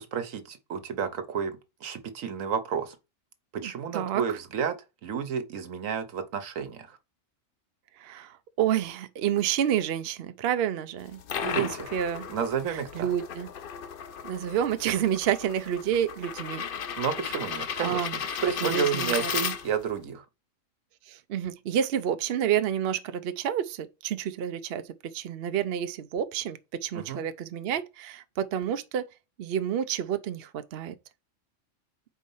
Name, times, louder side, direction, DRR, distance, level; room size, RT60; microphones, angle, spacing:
voice 1, 0.0-1.5 1.8-3.0 3.5-4.7 5.0-7.0 11.4-11.9 12.3-13.1 17.0-18.1 18.4-20.2 26.9-27.2, right 7 dB, 80° right, 1.3 m, -31 dB
voice 2, 3.6-4.2 8.0-11.2 11.5-12.3 12.7-13.5 14.2-16.6 17.8-18.2 18.6-19.5 21.1-29.1 29.4-30.9, right 9 dB, 60° right, 0.7 m, -29 dB
sound 1, 11.0-20.0, left 7 dB, 55° left, 0.7 m, -35 dB
4.6 x 4.2 x 5.4 m
omnidirectional pair, 1.4 m